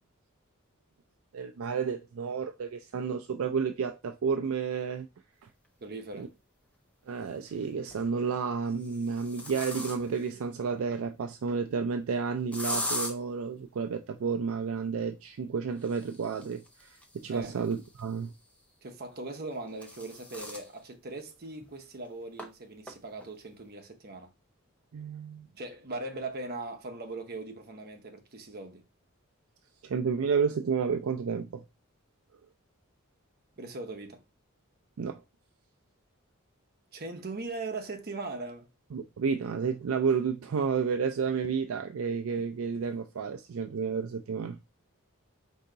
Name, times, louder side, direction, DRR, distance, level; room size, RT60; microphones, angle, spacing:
voice 1, 1.3-5.1 6.2-6.3 7.1-18.3 24.9-25.5 29.8-31.6 35.0-35.2 38.9-44.6, right 5 dB, 70° right, 0.4 m, -31 dB
voice 2, 5.8-6.3 17.3-17.6 18.8-24.3 25.6-28.8 33.6-34.2 36.9-38.7, right 2 dB, 45° right, 0.8 m, -40 dB
sound 1, 6.1-6.2 7.7-8.1 8.7-10.3 12.5-13.1 15.7-18.3 19.4-20.7 21.2-21.3 21.6-21.7 22.4-22.5 22.9-23.3, left 1 dB, 5° left, 0.7 m, -39 dB
4.5 x 2.8 x 3.7 m
head